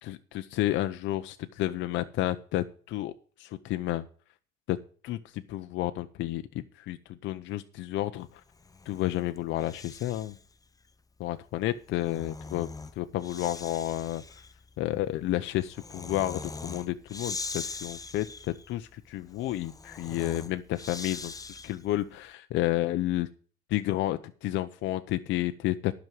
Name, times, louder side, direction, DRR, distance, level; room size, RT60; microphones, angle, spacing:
voice 1, 0.0-3.1 3.4-4.0 4.7-4.8 5.0-8.4 8.9-10.4 11.2-12.7 13.0-14.2 14.8-23.3 23.7-25.9, left 15 dB, 70° left, 9 dB, 0.7 m, -31 dB
Breathing, 8.5-10.5 11.7-22.0, left 4 dB, 20° left, 0.7 m, -42 dB
11.0 x 6.2 x 7.6 m, 0.43 s
supercardioid pair, 80°, 20 cm